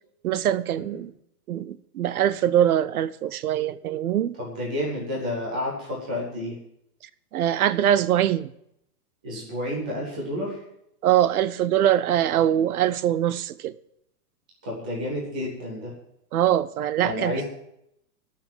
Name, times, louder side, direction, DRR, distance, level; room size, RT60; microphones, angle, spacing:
voice 1, 0.2-1.1 1.5-4.4 7.3-8.5 11.0-13.7 16.3-17.4, right 11 dB, 65° right, 0.8 m, -23 dB
voice 2, 4.4-6.6 9.2-10.6 14.6-15.9 17.0-17.4, left 1 dB, 5° right, 0.4 m, -30 dB
13.5 x 5.9 x 9.3 m
hypercardioid pair, 160°, 48 cm